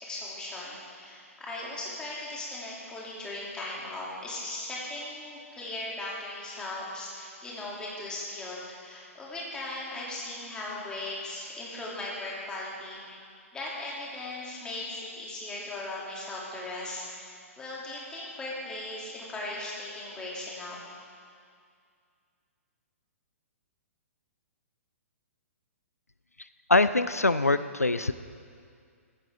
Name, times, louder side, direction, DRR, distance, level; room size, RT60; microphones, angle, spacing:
voice 1, 0.0-13.2 13.5-17.3 17.6-20.8, left 2 dB, 10° left, -5 dB, 3.2 m, -38 dB
voice 2, 26.7-28.1, left 2 dB, 85° left, 13 dB, 0.4 m, -23 dB
15.5 x 14.0 x 3.8 m, 2.2 s
figure-of-eight pair, 115°, 8 cm